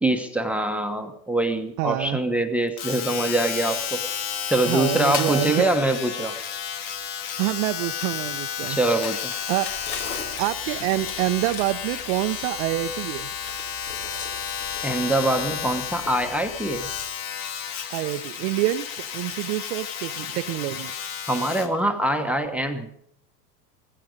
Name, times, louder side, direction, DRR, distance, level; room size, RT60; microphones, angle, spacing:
voice 1, 0.0-4.0 4.4-6.4 8.7-9.3 14.8-16.9 21.3-22.9, right 1 dB, 5° right, 7 dB, 1.0 m, -24 dB
voice 2, 1.8-2.2 4.7-5.7 7.4-8.8 9.5-9.7 10.4-13.3 17.9-20.9, right 17 dB, 60° right, 10 dB, 0.7 m, -27 dB
Domestic sounds home sounds, 2.8-21.8 22.4-22.5, left 8 dB, 55° left, 2.1 m, -32 dB
sound 1, 5.1-5.4 8.0-10.3, left 7 dB, 30° left, 1.2 m, -37 dB
sound 2, 9.7-17.0, left 3 dB, 75° left, 4.5 m, -42 dB
16.0 x 15.5 x 5.2 m, 0.71 s
supercardioid pair, 115°, 44 cm